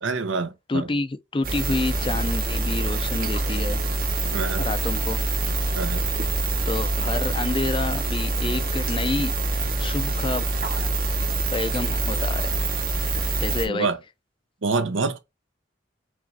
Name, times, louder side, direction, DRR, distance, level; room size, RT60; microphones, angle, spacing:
voice 1, 0.0-0.9 4.3-4.7 5.7-6.1 13.7-14.0 14.6-15.2, right 4 dB, 85° right, 0.8 m, -26 dB
voice 2, 0.7-3.8 4.6-5.2 6.7-10.5 11.5-12.7 13.4-13.9, left 3 dB, 25° left, 0.4 m, -28 dB
sound 1, 1.4-13.7, right 2 dB, 50° right, 0.8 m, -25 dB
4.8 x 3.1 x 2.6 m
head